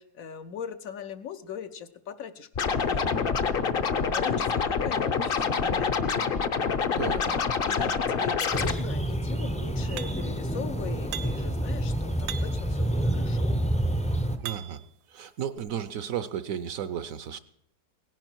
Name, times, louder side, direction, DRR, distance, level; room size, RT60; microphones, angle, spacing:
voice 1, 0.0-3.3 4.1-6.0 7.0-13.5, left 8 dB, 65° left, 10 dB, 1.0 m, -40 dB
Scratching (performance technique), 2.5-8.7, left 5 dB, 45° left, 0.8 m, -26 dB
sound 1, 8.5-14.4, right 1 dB, 10° left, 0.4 m, -28 dB
sound 2, 10.0-10.4 11.1-11.6 12.3-12.7 13.5-14.9 15.6-15.7, right 11 dB, 85° right, 1.3 m, -40 dB
voice 2, 14.4-14.8 15.1-17.4, right 9 dB, 65° right, 13 dB, 1.0 m, -33 dB
17.5 x 10.5 x 4.6 m, 0.71 s
omnidirectional pair, 1.7 m